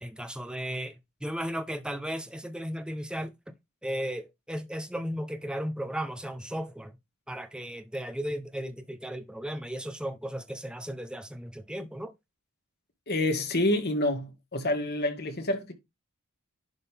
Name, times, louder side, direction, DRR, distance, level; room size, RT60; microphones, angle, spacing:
voice 1, 0.0-3.3 3.8-7.0 7.3-12.1, equal, 5° right, 0.7 m, -35 dB
voice 2, 13.1-15.7, left 1 dB, 45° left, 2.0 m, -28 dB
11.0 x 3.9 x 3.5 m
head